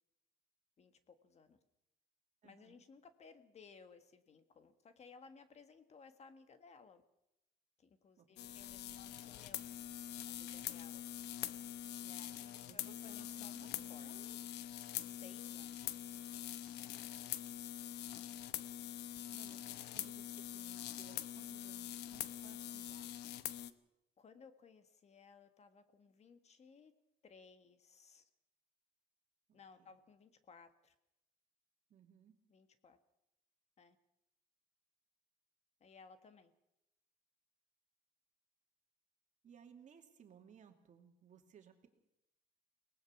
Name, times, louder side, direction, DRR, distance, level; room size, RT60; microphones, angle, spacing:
voice 1, 0.8-1.6 2.4-7.0 7.8-9.6 10.2-11.0 12.0-14.1 15.1-16.0 24.2-26.9 27.2-28.3 29.5-30.9 32.5-33.0 33.8-34.0 35.8-36.5, left 5 dB, 40° left, 9 dB, 1.6 m, -60 dB
voice 2, 2.4-2.8 8.2-8.6 12.6-14.4 19.3-23.3 29.5-29.9 31.9-32.4 39.4-41.9, right 8 dB, 45° right, 4 dB, 2.6 m, -62 dB
sound 1, 8.4-23.7, left 12 dB, 80° left, 0.9 m, -44 dB
23.0 x 19.0 x 6.0 m, 0.86 s
cardioid pair, 110°, 17 cm